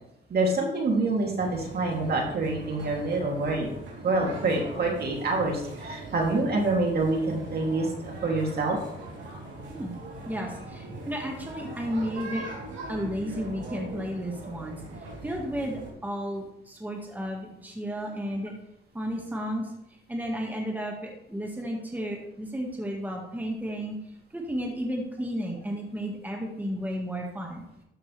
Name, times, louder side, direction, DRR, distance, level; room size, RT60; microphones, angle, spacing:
voice 1, 0.3-3.7 4.0-8.8, right 2 dB, 55° right, 0 dB, 2.7 m, -26 dB
sound 1, 1.4-15.9, right 2 dB, 70° right, 3.2 m, -41 dB
voice 2, 10.2-12.5 12.9-14.8 15.2-18.5 18.9-19.7 20.1-24.0 24.3-27.6, equal, 10° right, 0 dB, 1.7 m, -33 dB
12.5 x 6.1 x 3.3 m, 0.81 s
cardioid pair, 90°, 20 cm